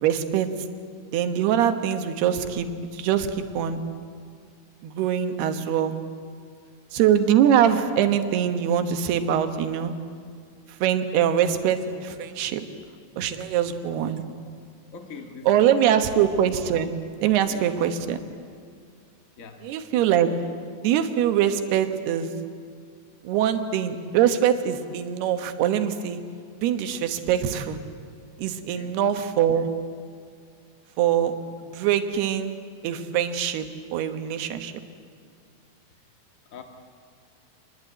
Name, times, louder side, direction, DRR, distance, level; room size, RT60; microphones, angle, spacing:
voice 1, 0.0-0.5 1.1-3.8 4.8-6.0 6.9-9.9 10.7-12.6 13.2-14.2 15.5-16.9 17.2-18.2 19.6-20.3 20.8-22.3 23.2-26.2 26.6-27.8 28.4-29.7 31.0-31.4 31.6-32.6 32.8-34.7, right 9 dB, 85° right, 8 dB, 3.3 m, -23 dB
voice 2, 14.9-16.0 17.2-17.7 19.4-19.7 28.5-29.0 36.4-36.6, left 5 dB, 75° left, 4 dB, 0.7 m, -43 dB
27.0 x 20.5 x 9.1 m, 2.2 s
omnidirectional pair, 4.5 m